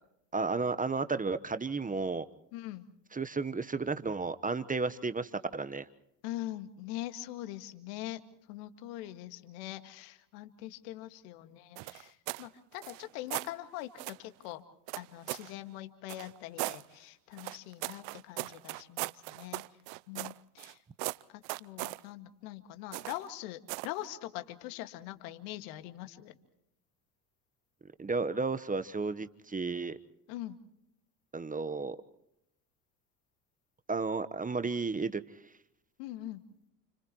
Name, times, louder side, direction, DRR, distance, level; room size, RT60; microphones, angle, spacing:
voice 1, 0.3-2.3 3.1-5.9 28.0-30.0 31.3-32.0 33.9-35.2, right 4 dB, 15° right, 1.1 m, -33 dB
voice 2, 2.5-2.9 6.2-8.2 8.5-14.6 15.0-19.6 20.1-20.8 21.3-26.3 30.3-30.6 36.0-36.4, left 15 dB, 70° left, 2.1 m, -43 dB
sound 1, 11.8-12.5 12.8-13.5 14.0-14.2 14.9-15.5 16.1-16.8 17.4-20.7 21.0-22.0 22.9-23.3 23.7-24.0, right 24 dB, 60° right, 0.7 m, -38 dB
30.0 x 29.5 x 3.1 m
hypercardioid pair, 70°, 48 cm